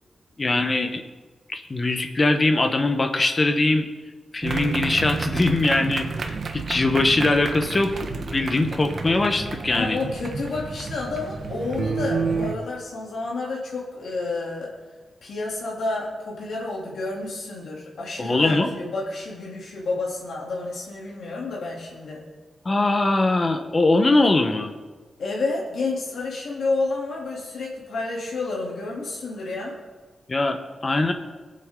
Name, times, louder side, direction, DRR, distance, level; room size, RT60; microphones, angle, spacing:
voice 1, 0.4-1.0 1.5-3.9 4.3-10.0 18.2-18.7 22.6-24.7 30.3-31.1, left 2 dB, 25° left, 7 dB, 1.0 m, -22 dB
sound 1, 4.4-12.5, right 4 dB, 50° right, 0.9 m, -30 dB
voice 2, 9.7-14.7 15.2-22.2 25.2-29.8, left 3 dB, 75° left, -4 dB, 2.8 m, -30 dB
22.5 x 7.7 x 3.7 m, 1.3 s
wide cardioid pair, 170°, 0 cm